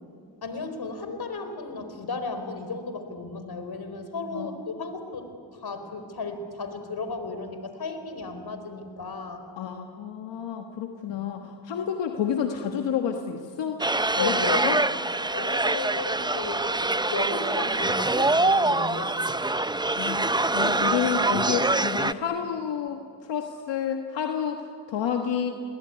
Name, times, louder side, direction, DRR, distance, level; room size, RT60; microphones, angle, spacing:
voice 1, 0.4-9.5 11.1-11.2 14.2-14.6 15.3-16.7 17.1-19.1, left 3 dB, 60° left, 8 dB, 4.4 m, -34 dB
voice 2, 9.6-13.8 14.1-14.8 20.0-25.5, left 8 dB, 90° left, 4 dB, 1.5 m, -30 dB
sound 1, 13.8-22.1, right 2 dB, 10° right, 0.7 m, -24 dB
27.0 x 21.5 x 9.9 m, 2.3 s
cardioid pair, 50°, 43 cm